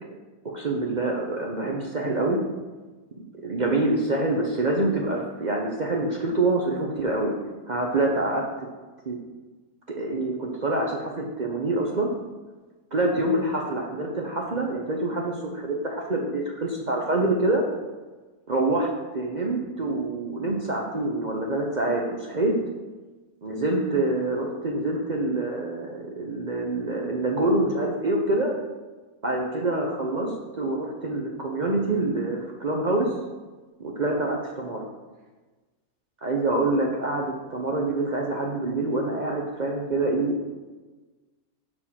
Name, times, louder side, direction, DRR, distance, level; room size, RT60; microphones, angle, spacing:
voice 1, 0.4-2.4 3.4-7.3 7.7-8.4 9.0-9.2 10.0-12.1 12.9-17.6 18.5-22.5 23.4-28.5 29.2-33.1 33.8-34.9 36.2-40.4, right 2 dB, 45° right, -1 dB, 0.6 m, -26 dB
6.7 x 4.4 x 5.7 m, 1.2 s
omnidirectional pair, 1.7 m